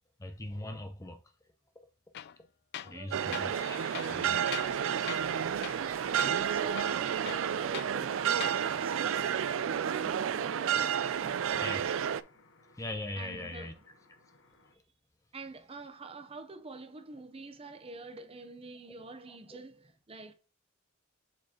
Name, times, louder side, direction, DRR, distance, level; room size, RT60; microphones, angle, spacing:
voice 1, 0.2-1.2 2.8-4.7 10.8-10.9 11.6-12.0 12.8-13.7 19.5-19.6, left 1 dB, 15° left, 0.6 m, -41 dB
Tools, 2.1-2.4 2.7-3.0 3.3-3.5 3.9-4.8 5.1-5.3 5.6-5.9 6.2-6.3 6.7-7.9 8.3-8.6, left 11 dB, 55° left, 0.3 m, -42 dB
voice 2, 2.8-3.8 6.2-12.1 13.2-13.8 15.3-20.3, right 2 dB, 30° right, 0.7 m, -47 dB
sound 1, 3.1-12.2, right 8 dB, 80° right, 0.4 m, -31 dB
sound 2, 3.5-14.7, left 4 dB, 75° left, 1.0 m, -55 dB
7.5 x 4.3 x 2.9 m
head